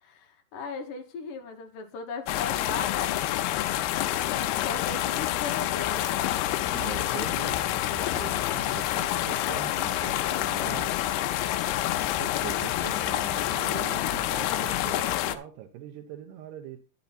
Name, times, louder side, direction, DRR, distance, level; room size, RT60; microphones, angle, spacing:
voice 1, 0.0-3.2 4.2-6.1, left 5 dB, 65° left, 2.5 m, -38 dB
sound 1, 2.3-15.4, left 13 dB, 80° left, 2.6 m, -28 dB
voice 2, 6.7-11.0 12.2-16.8, right 11 dB, 85° right, 2.9 m, -42 dB
10.5 x 7.0 x 4.1 m
omnidirectional pair, 4.7 m